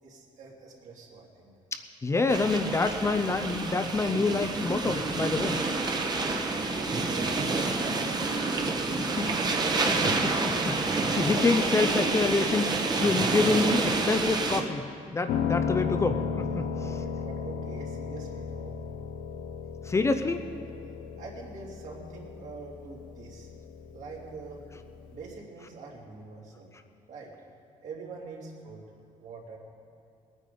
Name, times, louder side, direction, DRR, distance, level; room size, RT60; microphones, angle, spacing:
voice 1, 0.0-1.5 6.4-8.3 8.8-9.2 16.4-19.1 21.2-23.5 23.9-24.6 25.1-26.7 27.1-27.3 27.8-28.9 29.2-29.6, right 4 dB, 65° right, -3 dB, 2.9 m, -44 dB
voice 2, 2.0-5.6 9.2-9.3 9.8-10.3 10.7-14.9 15.1-16.6 19.9-20.4, left 3 dB, 20° left, 7 dB, 0.6 m, -27 dB
sound 1, 2.3-14.6, right 3 dB, 30° right, 1.1 m, -28 dB
Piano, 15.3-25.4, left 6 dB, 85° left, 0.7 m, -35 dB
20.0 x 9.3 x 5.2 m, 2.5 s
cardioid pair, 130°, 14 cm